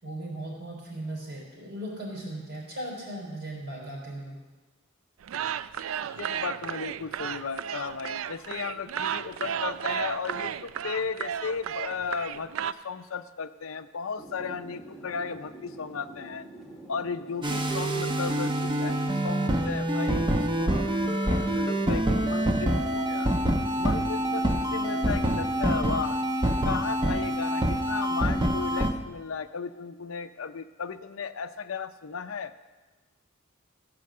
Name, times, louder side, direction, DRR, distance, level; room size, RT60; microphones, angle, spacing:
voice 1, 0.0-4.4, right 1 dB, 55° right, -3 dB, 4.1 m, -37 dB
sound 1, 5.2-12.7, right 9 dB, 80° right, 0.4 m, -33 dB
voice 2, 6.1-16.5 16.9-23.3 23.8-26.2 26.6-32.5, left 5 dB, 85° left, 11 dB, 0.6 m, -35 dB
sound 2, 14.2-25.6, right 2 dB, ahead, 1.5 m, -46 dB
sound 3, 17.4-28.9, right 1 dB, 25° right, 0.8 m, -26 dB
15.5 x 5.2 x 7.5 m, 1.2 s
head